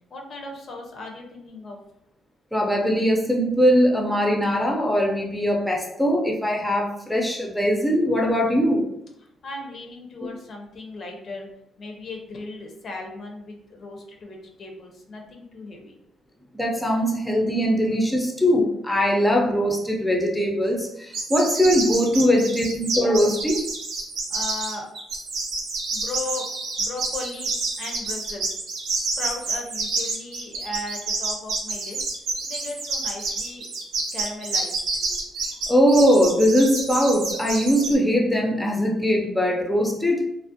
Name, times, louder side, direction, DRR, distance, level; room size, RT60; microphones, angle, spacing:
voice 1, 0.1-1.8 9.4-11.5 11.8-15.9 24.3-24.9 25.9-26.5 26.8-27.5 27.8-28.5 29.0-32.1 32.4-33.7 34.1-35.0, left 2 dB, 55° left, 1 dB, 0.5 m, -37 dB
voice 2, 2.5-8.8 16.5-23.6 35.7-40.3, equal, 5° left, -1 dB, 0.5 m, -21 dB
sound 1, 21.1-37.9, right 3 dB, 85° right, 0.6 m, -28 dB
2.4 x 2.0 x 2.6 m, 0.79 s
cardioid pair, 90°, 0 cm